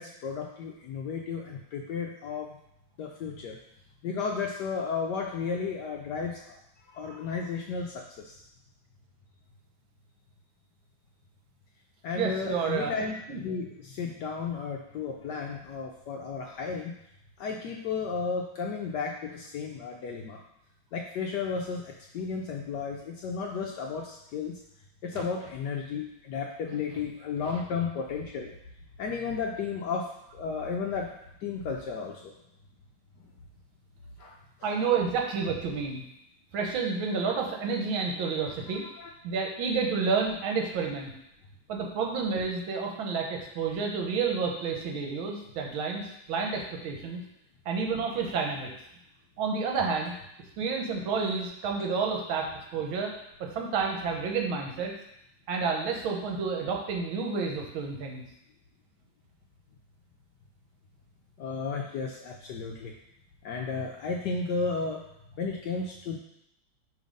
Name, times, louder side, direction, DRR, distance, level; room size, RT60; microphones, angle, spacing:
voice 1, 0.0-2.6 3.0-3.6 4.0-6.6 6.9-8.4 12.0-16.9 17.4-20.4 20.9-24.6 25.0-28.5 29.0-31.1 31.4-32.3 34.2-34.7 38.8-39.1 61.4-62.9 63.4-65.0 65.4-66.2, left 5 dB, 75° left, 0 dB, 1.0 m, -33 dB
voice 2, 12.1-12.9 13.3-13.4 25.1-25.2 27.5-27.6 34.6-36.0 36.5-38.8 39.2-41.1 41.7-47.2 47.6-48.7 49.4-50.1 50.6-53.1 53.4-54.9 55.5-58.2, right 5 dB, 75° right, 1 dB, 1.7 m, -30 dB
5.4 x 3.4 x 5.1 m, 0.80 s
omnidirectional pair, 2.3 m